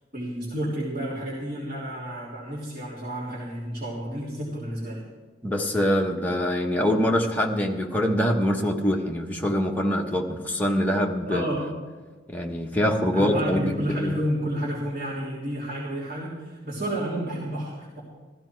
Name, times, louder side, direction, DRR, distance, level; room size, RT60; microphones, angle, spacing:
voice 1, 0.1-5.0 11.3-11.7 13.1-18.0, equal, 50° right, -8 dB, 3.2 m, -30 dB
voice 2, 5.4-11.4 12.3-14.1, equal, 10° left, 0 dB, 1.1 m, -24 dB
15.5 x 12.5 x 4.6 m, 1.3 s
head